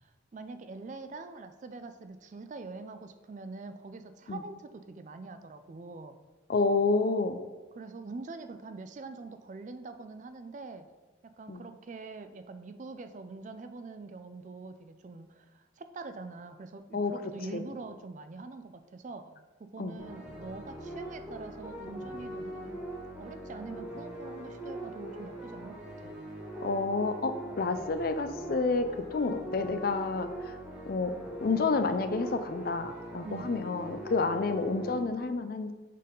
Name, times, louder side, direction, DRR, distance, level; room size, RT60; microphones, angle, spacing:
voice 1, 0.0-6.2 7.7-10.9 11.4-22.7 23.2-26.1 33.2-33.6, right 3 dB, 40° right, 9 dB, 0.3 m, -44 dB
voice 2, 6.5-7.4 11.5-11.6 16.9-17.1 17.5-17.6 19.8-19.9 26.6-30.6 30.9-31.1 31.4-35.7, left 3 dB, 50° left, 9 dB, 0.4 m, -29 dB
sound 1, 20.0-35.0, right 1 dB, 5° right, 1.3 m, -42 dB
6.5 x 5.4 x 3.8 m, 1.2 s
head